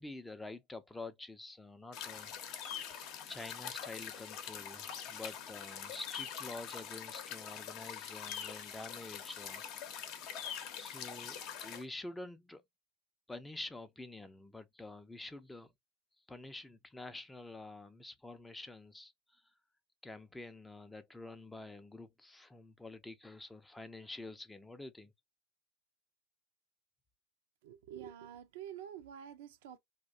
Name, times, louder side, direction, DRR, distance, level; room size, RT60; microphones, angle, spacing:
voice 1, 0.0-2.3 3.3-10.0 10.8-12.6 13.3-15.7 16.3-19.4 20.0-25.1, left 2 dB, 10° left, 0.4 m, -48 dB
sound 1, 1.9-11.8, left 8 dB, 50° left, 0.7 m, -44 dB
voice 2, 27.6-29.8, right 10 dB, 65° right, 0.4 m, -48 dB
2.6 x 2.1 x 2.3 m
hypercardioid pair, 85°, 0 cm